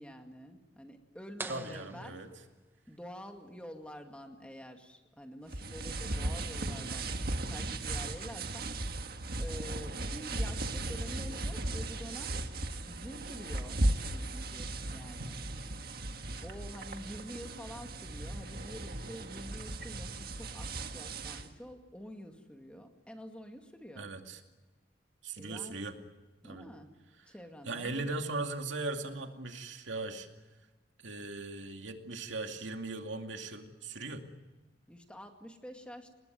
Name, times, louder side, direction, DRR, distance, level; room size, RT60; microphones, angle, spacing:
voice 1, 0.0-2.2 2.9-7.2 7.5-9.1 9.4-12.5 12.9-15.4 15.8-15.9 16.4-24.1 25.4-25.8 26.4-26.9 27.3-28.1 34.9-36.1, equal, 5° left, 4 dB, 2.1 m, -48 dB
sound 1, 1.4-3.1, right 3 dB, 10° right, 0.9 m, -45 dB
voice 2, 1.5-2.3 24.0-24.4 25.2-26.0 26.4-26.7 27.7-30.3 31.0-34.2, right 3 dB, 80° right, 5 dB, 2.4 m, -38 dB
sound 2, 5.5-21.5, right 2 dB, 50° right, 1.7 m, -36 dB
27.5 x 20.0 x 9.4 m, 1.2 s
head